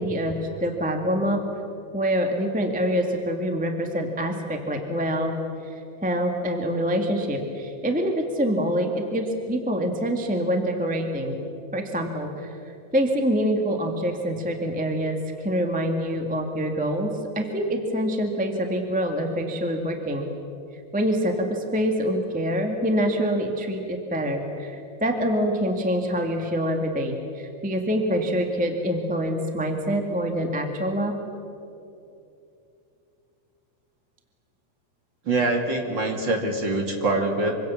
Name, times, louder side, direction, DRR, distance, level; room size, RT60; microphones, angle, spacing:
voice 1, 0.0-1.4 1.9-5.3 5.7-11.3 11.7-12.6 12.9-20.2 20.9-31.1, equal, 5° right, 3 dB, 1.1 m, -25 dB
voice 2, 35.3-37.6, right 2 dB, 35° right, 3 dB, 2.7 m, -24 dB
25.5 x 25.0 x 7.1 m, 2.7 s
omnidirectional pair, 3.7 m